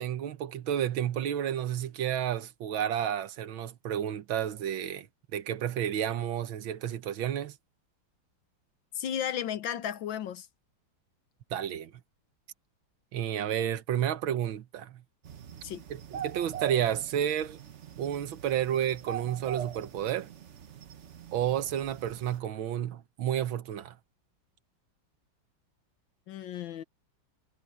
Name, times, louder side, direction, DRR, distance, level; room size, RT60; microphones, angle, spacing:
voice 1, 0.0-5.1 5.3-7.6 11.5-11.9 13.1-15.0 15.9-17.6 18.0-20.3 21.3-24.0, right 10 dB, 80° right, 1.8 m, -31 dB
voice 2, 8.9-10.5 15.6-15.8 26.3-26.8, left 9 dB, 75° left, 1.6 m, -34 dB
sound 1, 15.2-22.4, right 9 dB, 50° right, 1.0 m, -43 dB
omnidirectional pair, 2.1 m